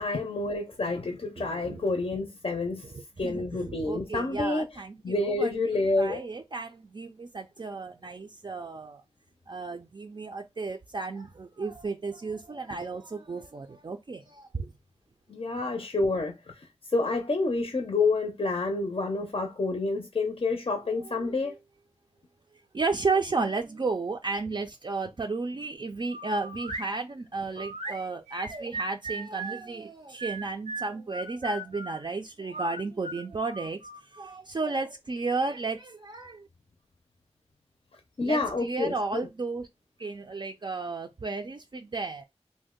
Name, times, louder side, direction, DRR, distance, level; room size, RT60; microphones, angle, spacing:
voice 1, 0.0-4.7 5.0-6.2 15.3-21.5 38.2-39.3, left 3 dB, 55° left, 0.5 m, -28 dB
voice 2, 1.4-1.8 3.2-9.0 9.5-14.7 21.0-21.5 22.7-33.8 34.2-36.5 38.2-39.7 40.0-42.2, right 3 dB, 40° right, 0.3 m, -33 dB
sound 1, 26.1-26.9 27.6-29.6 30.2-32.0 32.5-34.4, right 3 dB, 85° right, 0.7 m, -38 dB
2.6 x 2.1 x 3.6 m
wide cardioid pair, 45°, 12 cm